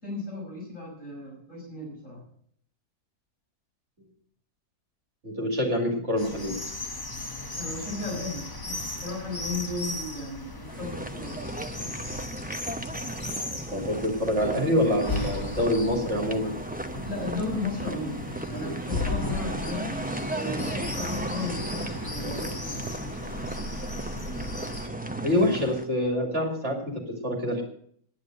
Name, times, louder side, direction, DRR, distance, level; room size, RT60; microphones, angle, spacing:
voice 1, 0.0-2.2 7.6-11.7 17.0-22.9, left 2 dB, 55° left, -3 dB, 5.9 m, -35 dB
voice 2, 5.2-6.6 13.7-16.6 25.2-27.6, left 1 dB, 50° right, 1 dB, 3.2 m, -26 dB
sound 1, 6.2-24.9, left 2 dB, 15° left, 1.0 m, -36 dB
sound 2, 10.7-25.9, right 1 dB, 10° right, 0.6 m, -35 dB
11.0 x 10.5 x 7.7 m, 0.62 s
omnidirectional pair, 1.6 m